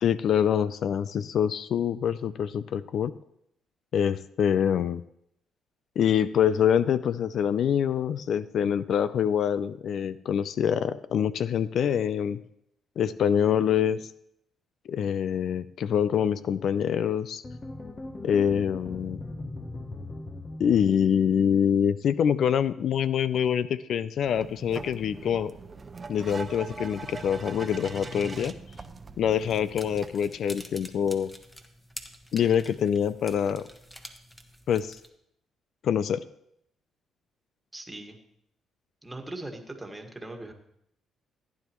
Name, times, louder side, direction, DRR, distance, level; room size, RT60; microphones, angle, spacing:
voice 1, 0.0-3.1 3.9-5.0 6.0-12.4 13.0-14.1 14.9-17.4 18.2-19.2 20.6-25.5 26.1-28.6 29.2-31.3 32.3-33.7 34.7-35.0 35.8-36.2, left 8 dB, 65° left, 15 dB, 0.3 m, -25 dB
sound 1, 17.4-21.7, left 2 dB, 25° left, 0.9 m, -40 dB
sound 2, 24.2-30.1, right 4 dB, 30° right, 0.7 m, -41 dB
sound 3, 29.3-35.1, equal, 5° left, 1.1 m, -47 dB
voice 2, 37.7-38.2 39.0-40.5, right 2 dB, 10° right, 3 dB, 1.7 m, -40 dB
15.0 x 9.5 x 3.1 m, 0.75 s
cardioid pair, 90°, 0 cm